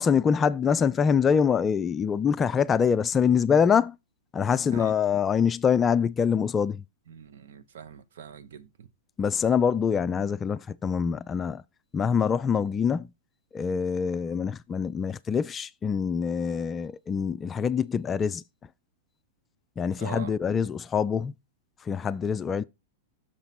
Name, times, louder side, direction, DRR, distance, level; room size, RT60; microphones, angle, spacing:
voice 1, 0.0-4.0 4.3-6.8 9.2-11.6 11.9-13.1 13.5-18.4 19.8-21.3 21.9-22.6, left 7 dB, 20° left, 0.3 m, -25 dB
voice 2, 4.6-4.9 7.1-8.9 20.0-20.3, right 7 dB, 60° right, 0.8 m, -43 dB
6.6 x 4.1 x 5.6 m
figure-of-eight pair, 95°, 0 cm